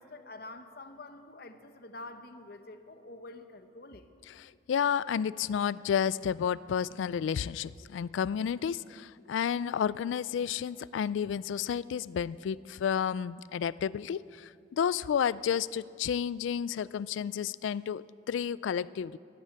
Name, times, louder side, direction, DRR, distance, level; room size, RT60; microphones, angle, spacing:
voice 1, 0.0-4.1, left 2 dB, 55° left, 9 dB, 0.9 m, -47 dB
voice 2, 4.4-19.2, left 8 dB, 85° left, 19 dB, 0.3 m, -31 dB
13.0 x 12.0 x 8.3 m, 2.4 s
head